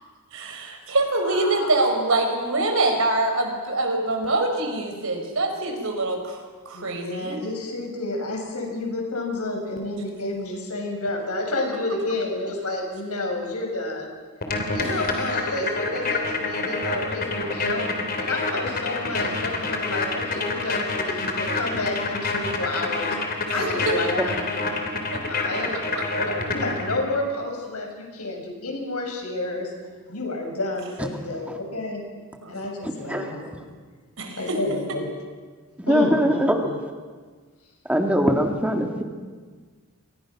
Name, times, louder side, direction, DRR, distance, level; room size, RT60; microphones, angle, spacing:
voice 1, 0.3-7.4 14.8-14.9 23.9-24.0 25.1-25.2 25.7-26.0 32.4-32.5 34.2-34.6, right 2 dB, 65° right, 4 dB, 4.8 m, -25 dB
voice 2, 1.2-1.8 6.7-14.1 14.7-17.8 18.2-23.2 23.5-24.4 25.3-29.7 30.1-32.0 32.5-33.4 34.4-35.1 35.9-36.8, left 2 dB, 80° left, 1 dB, 6.8 m, -30 dB
sound 1, 14.4-27.2, left 3 dB, 45° left, 3.5 m, -28 dB
voice 3, 33.1-33.5 35.9-36.7 37.9-39.0, equal, 5° right, 3 dB, 2.3 m, -21 dB
30.0 x 24.5 x 6.2 m, 1.5 s
head